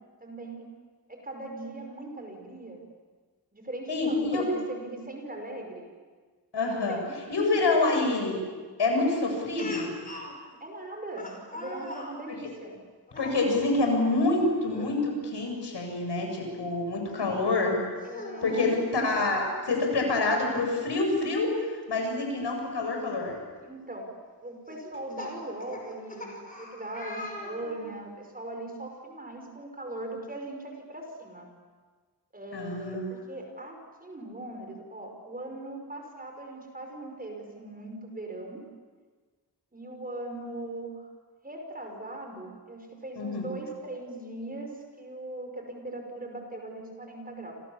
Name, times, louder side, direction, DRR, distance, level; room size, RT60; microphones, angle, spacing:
voice 1, 0.2-0.7 1.1-2.8 3.5-5.9 6.9-8.0 10.3-12.8 17.2-17.6 18.0-19.4 23.6-24.1 24.4-31.5 32.3-38.6 39.7-41.1 41.4-47.5, right 2 dB, 20° right, 3 dB, 5.5 m, -40 dB
voice 2, 3.9-4.5 6.5-7.0 7.3-8.4 8.8-9.9 13.2-17.8 18.4-23.4 32.5-33.1 43.2-43.5, left 3 dB, 85° left, 2 dB, 8.0 m, -27 dB
Speech, 9.6-10.3 11.2-12.1 13.1-13.4 14.7-14.9 15.3-15.4 17.1-17.2 18.0-18.9 20.2-20.3 20.6-20.7 22.6-22.7 23.3-23.6 24.7-28.0, left 1 dB, 20° left, 5.6 m, -41 dB
30.0 x 27.0 x 7.3 m, 1.4 s
wide cardioid pair, 170°, 40 cm